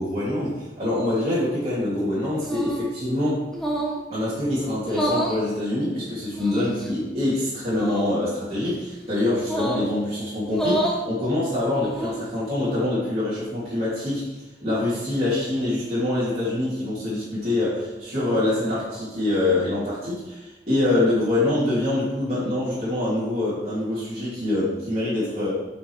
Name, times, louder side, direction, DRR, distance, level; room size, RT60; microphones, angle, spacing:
voice 1, 0.0-3.4 4.1-25.5, left 1 dB, 35° right, -12 dB, 3.1 m, -25 dB
sound 1, 2.4-2.9 3.5-4.0 4.8-5.4 6.3-6.9 7.7-8.1 9.4-9.9 10.5-11.0 11.7-12.3, right 1 dB, 5° left, 1.1 m, -28 dB
8.4 x 5.7 x 4.8 m, 1.1 s
head